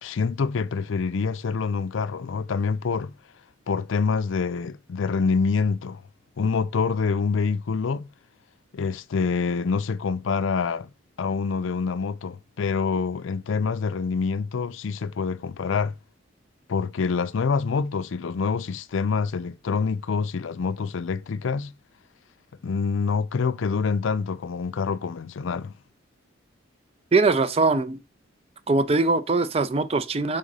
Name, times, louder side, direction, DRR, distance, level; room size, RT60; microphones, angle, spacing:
voice 1, 0.0-3.1 3.7-6.0 6.4-8.1 8.7-10.9 11.2-15.9 16.7-21.7 22.6-25.7, left 5 dB, 70° left, 0.4 m, -26 dB
voice 2, 27.1-28.0 28.7-30.4, right 3 dB, 30° right, 0.4 m, -22 dB
5.0 x 3.7 x 5.4 m
head